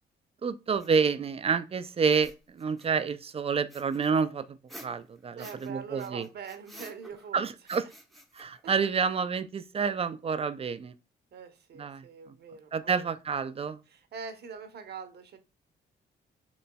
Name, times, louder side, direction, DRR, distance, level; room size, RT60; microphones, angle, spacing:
voice 1, 0.4-6.3 7.3-7.8 8.3-10.9 11.8-12.0 12.7-13.8, right 5 dB, 30° right, 0.4 m, -29 dB
sound 1, 0.8-0.9 2.1-3.1 3.7-5.7 6.0-7.3 7.7-9.1, equal, ahead, 0.7 m, -51 dB
voice 2, 5.4-7.4 8.6-8.8 11.3-13.1 13.9-15.4, right 6 dB, 55° right, 0.9 m, -43 dB
4.0 x 3.1 x 2.2 m
cardioid pair, 90°, 20 cm